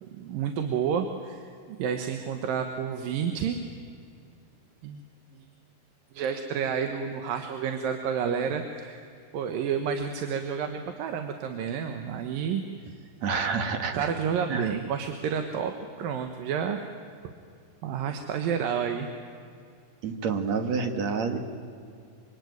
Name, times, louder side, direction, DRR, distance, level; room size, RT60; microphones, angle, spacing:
voice 1, 0.0-3.6 4.8-5.0 5.3-5.5 6.1-9.1 9.3-12.6 13.2-13.3 13.9-16.8 17.2-17.3 17.8-19.1, right 7 dB, 80° right, 6 dB, 3.0 m, -30 dB
voice 2, 13.2-14.1 14.5-14.7 20.0-21.4, right 5 dB, 55° right, 6 dB, 2.8 m, -28 dB
25.5 x 25.0 x 9.5 m, 2.4 s
omnidirectional pair, 4.0 m